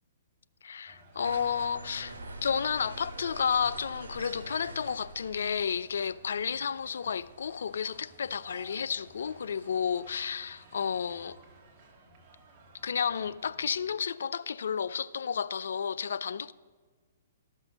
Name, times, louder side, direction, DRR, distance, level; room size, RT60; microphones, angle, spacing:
voice 1, 0.6-2.2 2.4-11.4 12.8-16.5, left 7 dB, 75° left, 0.3 m, -31 dB
sound 1, 0.9-14.0, right 3 dB, 35° right, 1.9 m, -57 dB
sound 2, 1.2-8.0, right 2 dB, 85° right, 1.4 m, -45 dB
13.0 x 6.2 x 5.1 m
hypercardioid pair, 135°, 0 cm